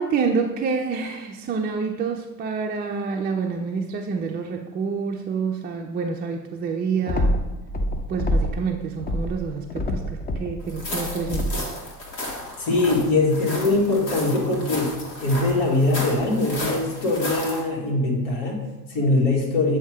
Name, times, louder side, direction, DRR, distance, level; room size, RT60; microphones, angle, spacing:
voice 1, 0.0-7.4 8.1-11.6, right 5 dB, 20° right, 1 dB, 0.4 m, -27 dB
sound 1, 7.1-8.7 9.0-11.8, left 1 dB, 20° left, 0.6 m, -26 dB
sound 2, 10.7-17.6, left 1 dB, 85° left, 1.5 m, -33 dB
voice 2, 12.6-19.8, left 2 dB, 60° left, -2 dB, 1.9 m, -22 dB
7.9 x 2.8 x 4.8 m, 1.1 s
hypercardioid pair, 75°, 50 cm